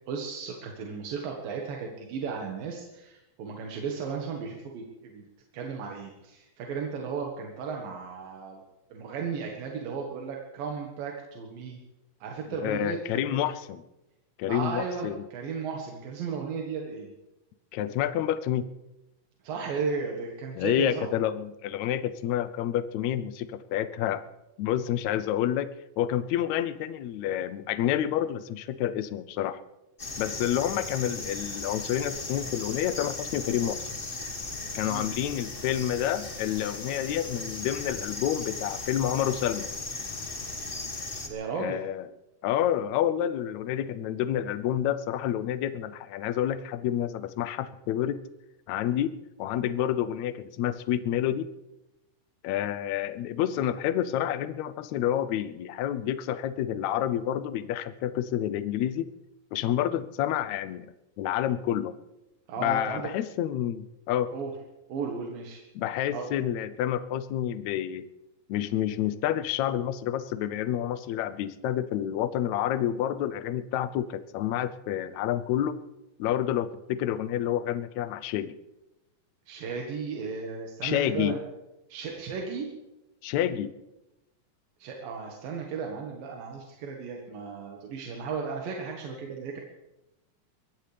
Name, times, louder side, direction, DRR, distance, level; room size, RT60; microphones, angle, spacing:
voice 1, 0.1-5.2 5.5-8.6 8.9-11.8 12.2-13.4 14.5-17.1 19.4-21.1 34.8-35.2 41.2-41.8 62.5-63.0 64.3-64.5 64.9-65.6 66.1-66.3 79.5-81.4 81.9-82.7 84.8-89.6, right 5 dB, 90° right, 0 dB, 3.3 m, -35 dB
voice 2, 12.5-13.8 14.4-15.2 17.7-18.7 20.6-24.3 24.6-25.7 26.0-29.6 30.2-33.9 34.7-39.7 41.6-42.1 42.4-48.2 48.7-49.1 49.4-51.5 52.4-59.1 59.5-60.9 61.2-61.9 62.6-64.3 65.8-68.1 68.5-75.8 76.2-78.6 80.8-81.4 83.2-83.7, left 11 dB, 75° left, 13 dB, 1.7 m, -29 dB
sound 1, 30.0-41.3, left 3 dB, 35° left, 0.9 m, -37 dB
22.0 x 17.0 x 3.4 m, 0.97 s
omnidirectional pair, 3.9 m